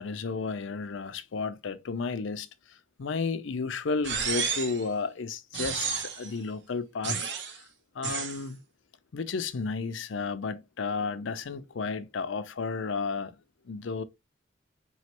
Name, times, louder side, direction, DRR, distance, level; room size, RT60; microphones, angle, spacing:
voice 1, 0.0-2.5 3.0-7.2 8.0-8.6 9.1-13.3 13.7-14.0, left 4 dB, 85° left, 0.5 m, -32 dB
sound 1, 4.0-4.8 5.5-6.3 7.0-7.6 8.0-8.4, right 6 dB, 65° right, 0.9 m, -31 dB
4.1 x 3.1 x 2.9 m
head